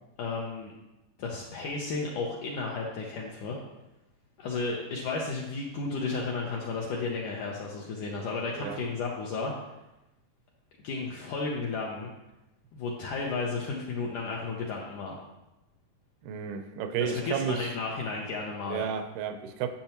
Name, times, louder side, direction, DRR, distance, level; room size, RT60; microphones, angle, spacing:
voice 1, 0.2-0.7 1.2-3.6 4.4-9.5 10.8-12.1 12.7-15.2 17.0-18.9, left 4 dB, 75° left, -2 dB, 1.9 m, -33 dB
voice 2, 16.2-17.7 18.7-19.7, right 7 dB, 85° right, 8 dB, 2.6 m, -32 dB
10.5 x 6.8 x 2.9 m, 0.99 s
omnidirectional pair, 4.3 m